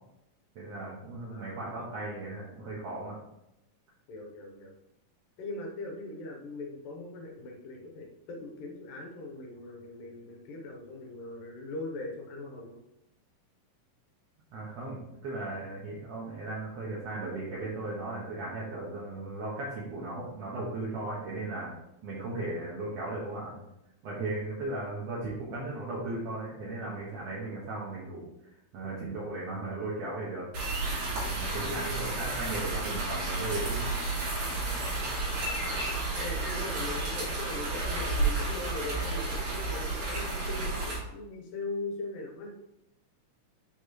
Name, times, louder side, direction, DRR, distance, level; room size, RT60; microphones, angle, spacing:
voice 1, 0.6-3.2 14.5-21.7 22.0-23.5 24.0-30.5 31.1-33.8, right 2 dB, 60° right, -6 dB, 1.9 m, -37 dB
voice 2, 1.3-2.2 4.1-4.8 5.4-12.8 31.7-32.0 34.6-35.5 36.2-42.5, left 2 dB, 85° left, 0 dB, 2.7 m, -41 dB
sound 1, 30.5-41.0, right 2 dB, 80° right, 4.4 m, -31 dB
8.1 x 4.3 x 3.1 m, 0.85 s
omnidirectional pair, 3.9 m